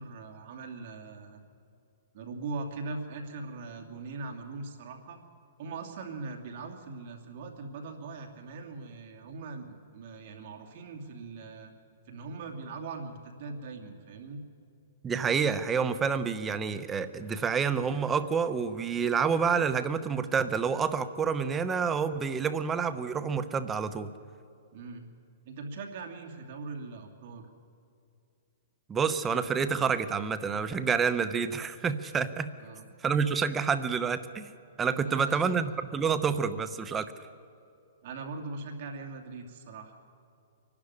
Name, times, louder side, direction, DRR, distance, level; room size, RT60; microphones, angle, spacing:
voice 1, 0.0-1.4 2.1-5.2 5.6-11.7 12.1-14.4 24.7-25.1 25.4-27.5 32.6-32.9 35.0-35.7 38.0-40.0, right 3 dB, 45° right, 2 dB, 2.6 m, -41 dB
voice 2, 15.0-24.1 28.9-32.5 33.0-34.5 34.8-37.1, right 6 dB, 15° right, 11 dB, 0.8 m, -28 dB
24.0 x 12.0 x 9.7 m, 2.6 s
hypercardioid pair, 155°, 0 cm